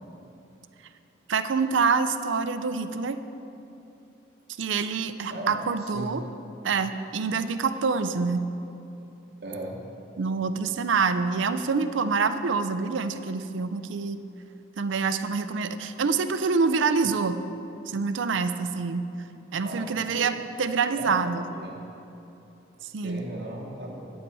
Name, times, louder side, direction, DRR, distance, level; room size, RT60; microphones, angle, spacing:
voice 1, 1.3-3.2 4.6-6.2 6.6-8.4 10.2-14.2 14.8-17.4 17.9-19.1 19.5-21.5 22.9-23.2, right 5 dB, 80° right, 10 dB, 0.5 m, -26 dB
voice 2, 5.3-6.1 9.4-9.8 19.6-20.3 20.9-21.2 21.5-21.8 23.0-24.1, right 1 dB, 55° right, -3 dB, 1.0 m, -37 dB
9.2 x 8.8 x 4.7 m, 2.8 s
head